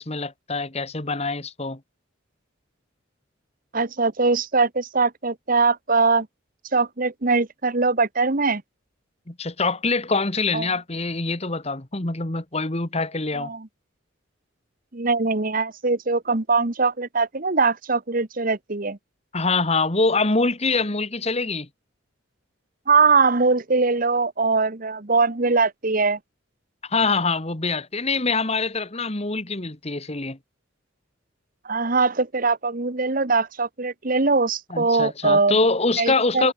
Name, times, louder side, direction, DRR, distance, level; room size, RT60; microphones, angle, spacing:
voice 1, 0.0-1.8 9.3-13.5 19.3-21.7 26.8-30.4 34.7-36.5, left 3 dB, 30° left, 1.8 m, -24 dB
voice 2, 3.7-6.3 6.7-8.6 10.5-10.7 13.4-13.7 14.9-19.0 22.9-26.2 31.6-35.6 36.0-36.5, right 4 dB, 45° right, 1.3 m, -21 dB
head